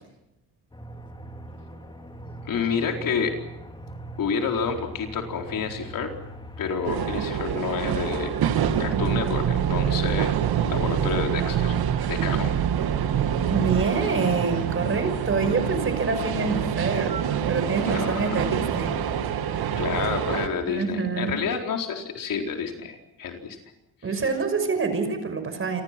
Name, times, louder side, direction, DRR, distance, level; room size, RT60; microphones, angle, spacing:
Aircraft, 0.7-7.2, right 1 dB, 15° left, 3.0 m, -40 dB
voice 1, 2.5-3.4 4.2-6.1 6.6-8.3 8.8-10.4 10.6-11.8 12.0-12.5 17.8-18.4 19.8-23.6 24.1-24.2, left 6 dB, 60° left, 3 dB, 4.3 m, -29 dB
sound 1, 6.8-20.5, right 8 dB, 80° right, 2.8 m, -27 dB
sound 2, 8.6-13.8, right 10 dB, 55° right, 1.4 m, -26 dB
voice 2, 13.5-17.1 17.5-18.9 20.7-21.4 24.0-25.8, right 4 dB, 35° right, 9 dB, 5.6 m, -26 dB
29.0 x 25.5 x 6.0 m, 0.87 s
cardioid pair, 140°, 37 cm